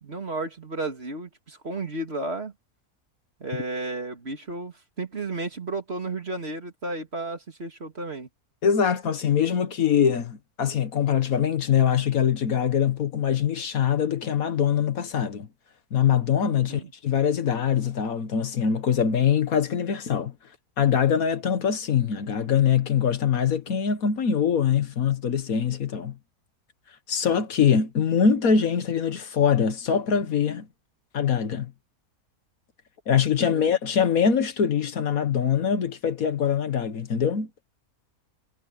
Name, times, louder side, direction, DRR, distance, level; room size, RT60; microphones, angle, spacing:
voice 1, 0.0-2.5 3.4-8.3 16.5-16.9 33.4-33.8, right 2 dB, 40° right, 2.7 m, -33 dB
voice 2, 8.6-15.5 15.9-20.3 20.8-26.1 27.1-30.7 31.1-31.7 33.1-37.5, left 7 dB, 65° left, 1.7 m, -23 dB
omnidirectional pair, 1.6 m